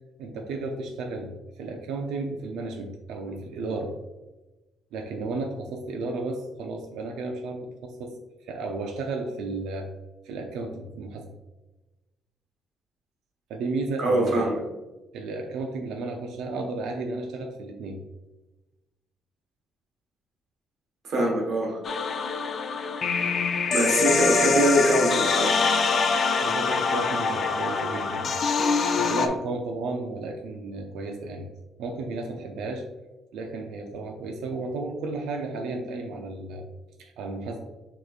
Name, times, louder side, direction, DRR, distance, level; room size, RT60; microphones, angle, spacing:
voice 1, 0.2-4.0 4.9-9.9 10.2-11.3 13.5-14.6 15.1-18.0 26.4-28.4 29.0-31.5 31.8-32.9 33.3-36.6 37.0-37.6, right 3 dB, 85° right, 3 dB, 0.5 m, -33 dB
voice 2, 14.0-14.6 21.0-21.8 23.7-25.6, right 1 dB, 50° right, -1 dB, 1.2 m, -23 dB
sound 1, 21.8-29.3, left 4 dB, 40° left, 0.4 m, -24 dB
6.5 x 3.1 x 2.4 m, 1.1 s
cardioid pair, 160°, 0 cm